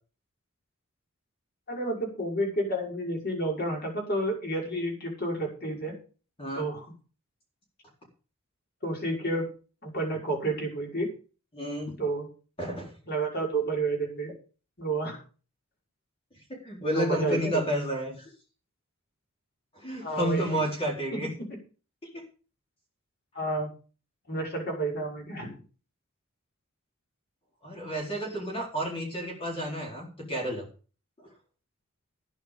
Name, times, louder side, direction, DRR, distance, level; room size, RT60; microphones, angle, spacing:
voice 1, 1.7-5.9 6.5-6.9 8.8-9.5 9.8-11.1 12.0-12.3 13.1-14.3 14.8-15.2 16.9-17.7 20.0-20.6 21.1-21.2 23.3-23.7 24.3-25.6, right 2 dB, 50° left, 0 dB, 6.0 m, -30 dB
voice 2, 11.5-11.9 12.6-12.9 16.5-18.3 19.7-21.3 22.1-22.2 27.6-30.7, equal, 25° left, -1 dB, 4.2 m, -31 dB
13.0 x 10.0 x 5.1 m, 0.37 s
head